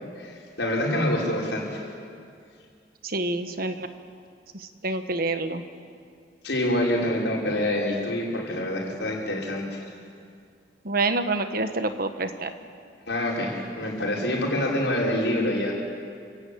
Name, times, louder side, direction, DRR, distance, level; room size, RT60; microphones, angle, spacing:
voice 1, 0.0-1.8 6.4-9.8 13.1-15.7, left 1 dB, 85° left, -2 dB, 5.5 m, -26 dB
voice 2, 3.0-3.9 4.5-5.6 10.8-12.5, right 2 dB, 55° right, 8 dB, 1.5 m, -27 dB
28.5 x 17.5 x 8.6 m, 2.3 s
head